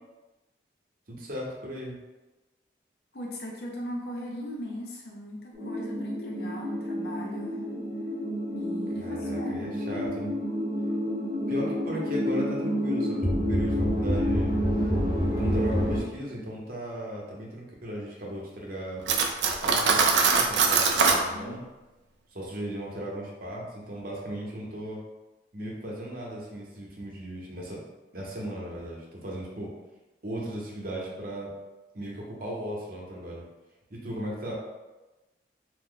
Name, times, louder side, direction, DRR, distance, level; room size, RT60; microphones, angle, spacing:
voice 1, 1.1-2.0 9.0-10.3 11.5-14.5 15.1-19.0 19.6-21.6 22.3-25.0 25.5-27.8 28.1-29.7 30.2-31.5 31.9-33.4 33.9-34.5, equal, 55° right, -3 dB, 0.8 m, -37 dB
voice 2, 3.1-7.6 8.5-9.7 21.3-21.6, left 1 dB, 60° left, -2 dB, 0.6 m, -39 dB
sound 1, 5.5-16.0, equal, 25° right, 0.8 m, -28 dB
Cutlery silverware, 19.1-21.2, right 5 dB, 85° right, 0.4 m, -22 dB
2.9 x 2.1 x 3.6 m, 1.1 s
head